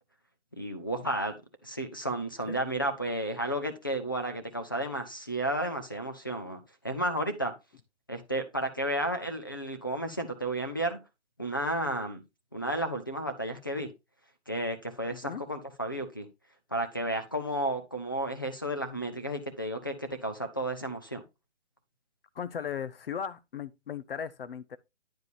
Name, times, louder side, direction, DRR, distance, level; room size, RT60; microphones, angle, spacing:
voice 1, 0.5-1.3 1.6-7.5 8.1-11.0 11.4-12.2 12.5-13.9 14.5-16.3 16.7-21.2, right 1 dB, 20° left, 0.4 m, -32 dB
voice 2, 22.3-24.8, left 7 dB, 55° left, 0.7 m, -37 dB
9.4 x 4.8 x 3.2 m
hypercardioid pair, 165°, 34 cm